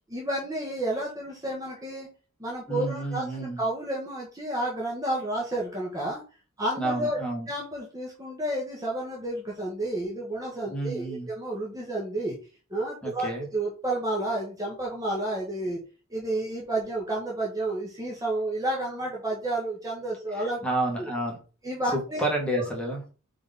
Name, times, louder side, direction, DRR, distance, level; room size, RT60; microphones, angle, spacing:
voice 1, 0.1-2.1 2.4-6.2 6.6-7.2 7.5-12.4 12.7-15.8 16.1-20.6 21.0-21.1 21.6-22.2, right 1 dB, 15° right, -2 dB, 1.3 m, -31 dB
voice 2, 2.7-3.6 6.8-7.5 10.7-11.3 13.0-13.5 20.4-21.4 21.9-23.0, right 1 dB, 5° left, -1 dB, 1.9 m, -30 dB
4.8 x 3.9 x 5.4 m, 0.36 s
head